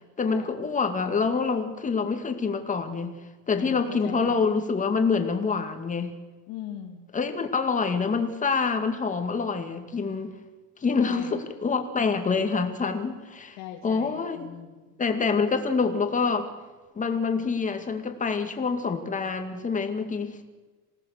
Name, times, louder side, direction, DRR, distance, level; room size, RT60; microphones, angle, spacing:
voice 1, 0.2-3.1 3.5-6.1 7.1-10.3 10.8-13.6 13.8-14.5 15.0-16.5 17.0-20.4, left 5 dB, 15° left, 6 dB, 2.2 m, -26 dB
voice 2, 3.5-4.4 6.5-7.0 11.0-11.4 13.6-14.9, left 10 dB, 60° left, 1 dB, 2.5 m, -40 dB
27.5 x 18.0 x 6.7 m, 1.2 s
supercardioid pair, 145°, 44 cm